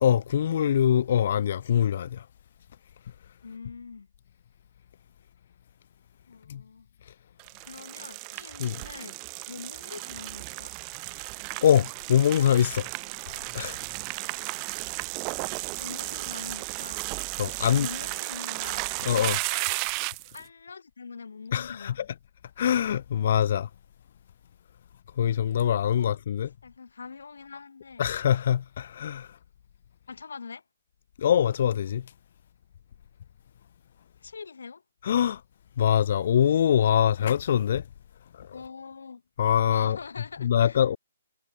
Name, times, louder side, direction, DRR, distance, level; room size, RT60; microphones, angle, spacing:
voice 1, 0.0-2.3 6.5-6.6 8.6-8.8 11.6-12.9 13.5-13.8 17.4-17.9 19.0-19.5 21.5-22.0 22.6-23.7 25.2-26.5 28.0-29.4 31.2-32.0 35.0-35.4 35.8-37.8 38.3-38.5 39.4-40.0 40.4-41.0, left 9 dB, 50° left, 1.0 m, -23 dB
voice 2, 3.4-4.1 6.3-6.9 7.7-9.2 9.5-10.7 15.8-17.1 17.4-19.1 19.5-19.9 20.3-22.0 26.0-26.1 26.6-28.0 30.1-30.6 34.2-34.8 38.5-39.2 39.7-40.8, left 5 dB, 75° left, 5.4 m, -43 dB
sound 1, 7.4-20.4, right 40 dB or more, 25° right, 2.1 m, -34 dB
hypercardioid pair, 150°, 0 cm